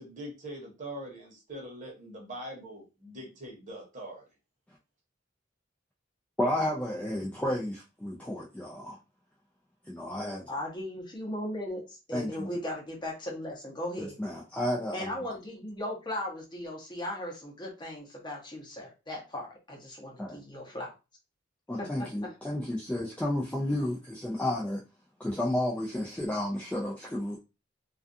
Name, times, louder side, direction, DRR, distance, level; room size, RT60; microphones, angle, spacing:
voice 1, 0.0-4.2, right 1 dB, 40° right, 0.9 m, -42 dB
voice 2, 6.4-9.0 9.9-10.5 12.1-12.5 14.0-15.1 20.2-20.4 21.7-24.8 25.2-27.4, left 1 dB, 5° left, 0.3 m, -32 dB
voice 3, 10.5-14.2 14.9-20.9 21.8-22.3, left 1 dB, 25° left, 0.7 m, -37 dB
2.3 x 2.3 x 2.5 m
head